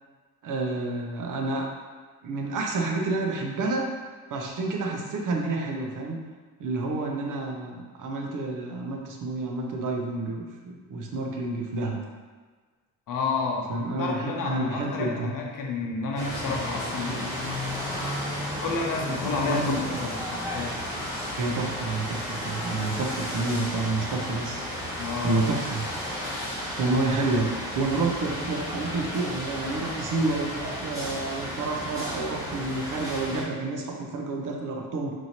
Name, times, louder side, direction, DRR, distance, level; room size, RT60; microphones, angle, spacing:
voice 1, 0.4-1.7 2.2-3.9 4.3-6.2 6.6-12.0 13.7-15.3 19.2-19.8 21.4-24.6 25.2-25.8 26.7-35.1, right 3 dB, 65° right, 1 dB, 0.7 m, -29 dB
voice 2, 13.1-17.3 18.6-20.7 25.0-25.5, left 4 dB, 65° left, -1 dB, 0.8 m, -30 dB
sound 1, 16.1-33.4, equal, 10° right, 1.5 m, -33 dB
4.4 x 2.8 x 2.9 m, 1.4 s
cardioid pair, 75°, 35 cm